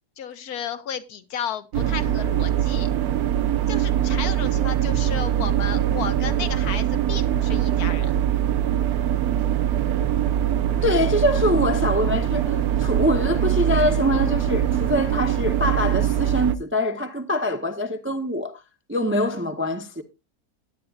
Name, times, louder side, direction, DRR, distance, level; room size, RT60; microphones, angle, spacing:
voice 1, 0.2-2.9 3.7-8.2, left 8 dB, 70° left, 1.4 m, -33 dB
sound 1, 1.7-16.6, right 11 dB, 70° right, 1.2 m, -22 dB
voice 2, 10.8-18.5 18.9-20.0, left 1 dB, 15° right, 0.5 m, -24 dB
17.5 x 9.1 x 2.4 m
omnidirectional pair, 1.7 m